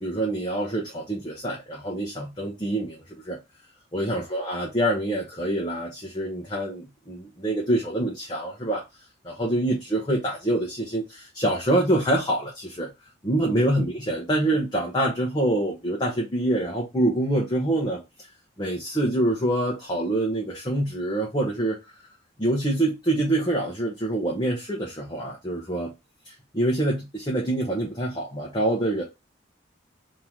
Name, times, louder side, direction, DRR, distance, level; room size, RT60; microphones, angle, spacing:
voice 1, 0.0-3.4 3.9-8.8 9.2-12.9 13.2-18.0 18.6-21.8 22.4-25.9 26.2-29.0, right 1 dB, 20° left, 0.8 m, -26 dB
3.0 x 2.8 x 3.6 m
head